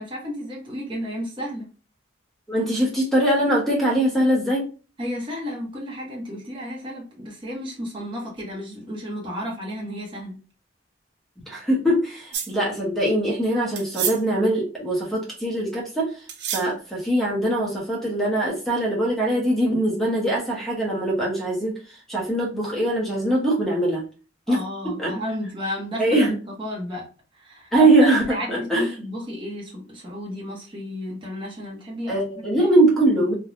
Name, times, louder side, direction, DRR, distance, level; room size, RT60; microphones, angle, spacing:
voice 1, 0.0-1.7 5.0-10.4 24.5-26.3 26.6-27.1 27.3-27.7 28.0-32.2, equal, 25° right, -2 dB, 0.8 m, -33 dB
voice 2, 2.5-4.6 11.5-16.1 16.5-21.7 22.1-24.0 24.5-24.6 24.8-25.1 26.0-26.4 27.7-28.8 32.1-33.3, right 1 dB, ahead, -4 dB, 0.8 m, -22 dB
sound 1, 12.3-12.5 13.8-14.2 16.3-16.7, right 8 dB, 60° right, 0.4 m, -28 dB
3.0 x 2.2 x 2.5 m, 0.35 s
head